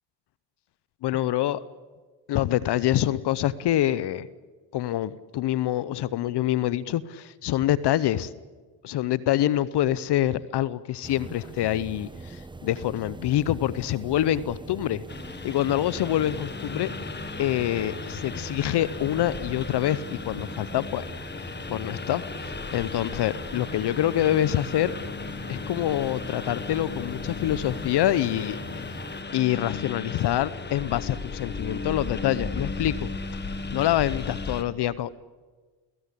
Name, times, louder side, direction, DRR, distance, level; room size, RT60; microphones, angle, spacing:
voice 1, 1.0-1.6 2.3-4.3 4.7-8.3 8.8-15.0 15.4-16.9 17.4-21.1 21.7-24.9 25.5-28.6 29.3-33.1 33.7-35.2, left 12 dB, 55° left, 18 dB, 0.9 m, -26 dB
sound 1, 11.0-29.2, right 2 dB, 10° right, 1.1 m, -42 dB
Engine, 15.1-34.6, left 4 dB, 20° left, 1.6 m, -36 dB
30.0 x 17.5 x 8.4 m, 1.4 s
supercardioid pair, 80°, 47 cm